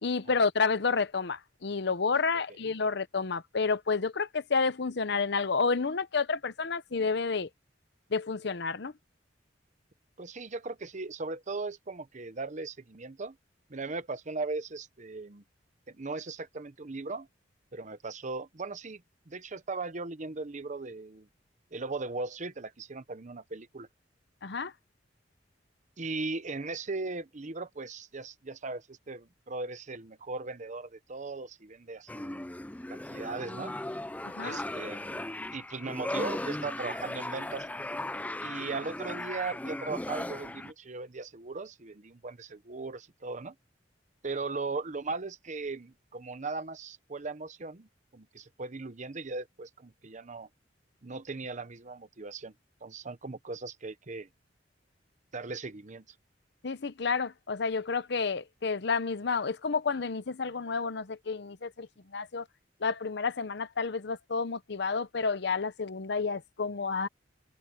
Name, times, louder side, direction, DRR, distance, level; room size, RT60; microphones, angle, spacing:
voice 1, 0.0-7.5 8.1-8.9 24.4-24.7 34.2-34.6 56.6-61.9 62.1-62.4 62.8-67.1, left 4 dB, 65° left, 0.8 m, -30 dB
voice 2, 10.2-13.4 13.7-15.4 15.9-17.3 17.7-21.3 21.7-23.9 26.0-32.4 32.9-33.7 34.4-35.2 35.5-37.7 38.4-43.5 44.2-47.9 48.1-50.5 51.0-52.5 52.8-54.3 55.3-56.0, right 3 dB, 40° right, 0.9 m, -38 dB
sound 1, 32.1-40.7, left 1 dB, 10° left, 0.5 m, -37 dB
open air
head